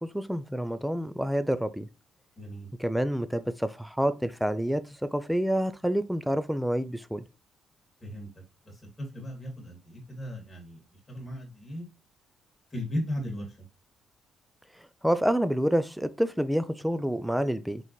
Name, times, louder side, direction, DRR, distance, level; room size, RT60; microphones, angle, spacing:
voice 1, 0.0-1.9 2.8-7.2 15.0-17.8, equal, ahead, 0.5 m, -28 dB
voice 2, 2.4-2.7 8.0-11.9 12.7-13.7, equal, 20° left, 2.2 m, -37 dB
4.1 x 4.0 x 3.1 m
cardioid pair, 90°, 0 cm